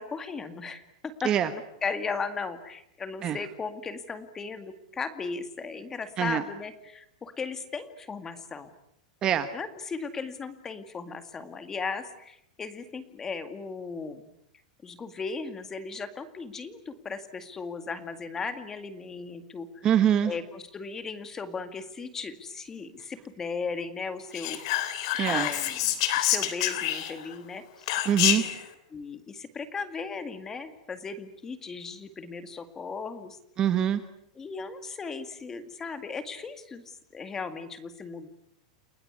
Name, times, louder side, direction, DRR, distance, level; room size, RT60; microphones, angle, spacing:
voice 1, 0.0-8.7 9.5-14.3 14.8-19.9 20.2-24.6 25.3-27.9 28.3-28.5 28.9-33.4 34.4-38.3, left 4 dB, 10° left, 10 dB, 2.1 m, -37 dB
voice 2, 9.2-9.5 19.8-20.3 25.2-25.5 28.0-28.5 33.6-34.0, right 10 dB, 20° right, 11 dB, 1.1 m, -24 dB
Whispering, 24.3-27.3 27.9-28.6, left 13 dB, 50° left, 3.4 m, -27 dB
30.0 x 20.5 x 9.7 m, 0.74 s
supercardioid pair, 175°, 4 cm